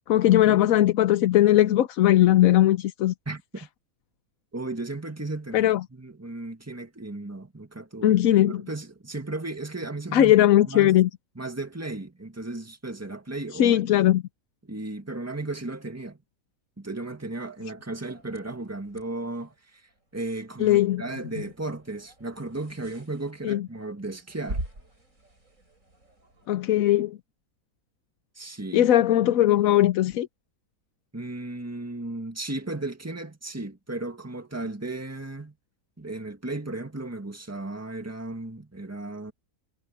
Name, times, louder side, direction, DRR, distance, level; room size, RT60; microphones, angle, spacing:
voice 1, 0.1-3.1 5.5-5.8 8.0-8.6 10.1-11.1 13.5-14.2 20.6-21.0 23.4-23.6 26.5-27.2 28.7-30.3, left 13 dB, 65° left, 1.1 m, -19 dB
voice 2, 3.3-3.7 4.5-8.2 8.5-10.3 10.7-11.0 11.4-13.8 14.6-16.2 16.8-24.6 28.4-28.9 31.1-35.5 36.0-39.3, right 2 dB, 10° right, 1.9 m, -35 dB
sound 1, 18.1-26.5, right 1 dB, 55° right, 7.8 m, -43 dB
omnidirectional pair, 1.7 m